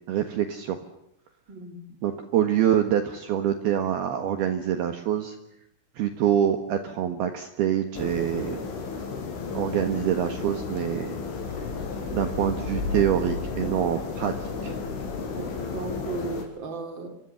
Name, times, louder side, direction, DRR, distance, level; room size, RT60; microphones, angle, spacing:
voice 1, 0.1-0.8 2.0-5.4 6.0-8.7 9.5-11.2 12.1-14.7, right 10 dB, 65° right, 3.1 m, -25 dB
voice 2, 1.5-1.8 15.3-17.2, right 4 dB, 25° right, 3.4 m, -36 dB
sound 1, 7.9-16.5, left 4 dB, 85° left, 6.5 m, -33 dB
28.5 x 25.0 x 7.2 m
omnidirectional pair, 5.5 m